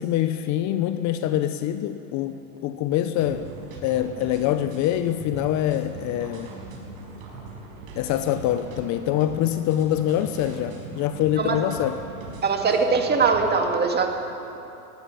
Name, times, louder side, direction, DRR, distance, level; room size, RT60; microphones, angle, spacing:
voice 1, 0.0-3.5 3.8-6.5 8.0-12.0, left 12 dB, 40° left, 10 dB, 0.8 m, -25 dB
sound 1, 3.1-13.5, right 3 dB, 60° right, 5.5 m, -40 dB
voice 2, 12.4-14.2, right 4 dB, 20° right, 3 dB, 2.3 m, -22 dB
19.5 x 16.5 x 8.4 m, 2.9 s
hypercardioid pair, 115°, 45 cm